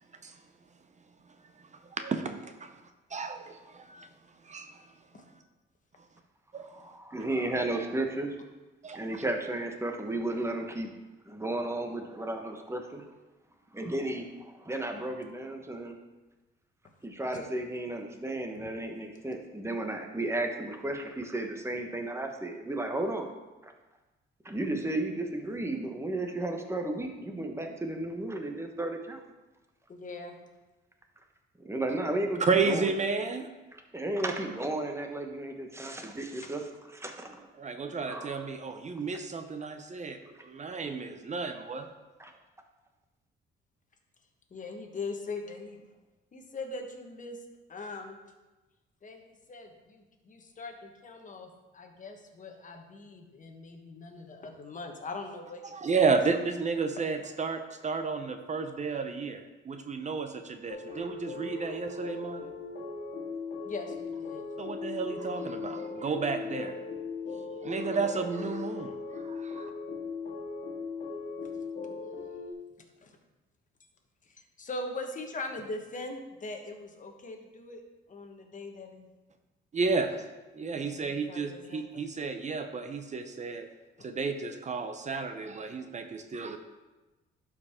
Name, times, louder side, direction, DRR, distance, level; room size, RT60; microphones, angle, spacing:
voice 1, 1.6-2.8 3.1-4.1 4.4-4.8 6.5-6.7 8.8-9.2 32.4-33.5 37.6-41.9 55.7-62.5 64.6-66.7 67.6-69.7 79.7-80.1 80.5-83.7 84.0-86.6, right 4 dB, 35° right, 7 dB, 0.7 m, -32 dB
voice 2, 6.7-8.3 8.9-10.9 11.3-13.0 13.7-15.9 17.0-23.3 23.6-23.7 24.4-29.2 31.6-32.9 33.9-36.6 36.9-37.4 38.1-38.4 42.2-42.3, right 2 dB, 15° right, 4 dB, 1.2 m, -33 dB
voice 3, 29.9-30.4 44.5-45.8 46.3-47.4 47.7-48.2 49.0-55.8 56.3-56.4 57.0-57.1 63.6-64.5 72.8-73.2 74.2-77.8 78.1-79.1 80.1-80.2 80.8-82.0, left 3 dB, 40° left, 3 dB, 1.3 m, -41 dB
sound 1, 60.7-72.5, left 4 dB, 55° left, 2.0 m, -38 dB
11.5 x 4.9 x 3.6 m, 1.1 s
cardioid pair, 90°, 20 cm